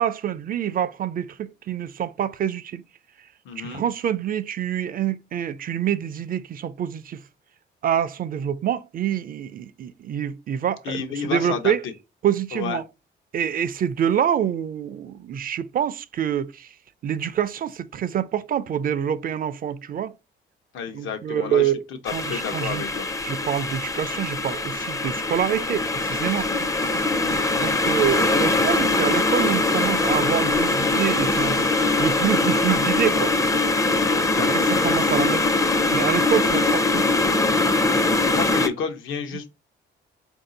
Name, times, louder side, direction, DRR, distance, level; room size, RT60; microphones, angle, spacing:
voice 1, 0.0-2.8 3.6-7.2 7.8-11.8 12.2-12.9 13.3-16.7 17.0-20.1 20.9-21.8 22.1-22.9 23.2-26.5 27.6-31.6 32.0-33.3 34.4-35.5 35.9-37.2, right 9 dB, 45° right, 0.4 m, -26 dB
voice 2, 3.4-3.8 10.8-11.9 12.5-12.8 20.7-21.7 22.3-23.0 27.1-27.4 34.1-34.8 38.2-39.5, left 6 dB, 80° left, 0.8 m, -31 dB
sound 1, 22.1-38.7, left 2 dB, 15° left, 0.4 m, -22 dB
sound 2, 26.2-31.8, right 8 dB, 80° right, 0.8 m, -40 dB
4.0 x 2.7 x 3.8 m
cardioid pair, 90°, 20 cm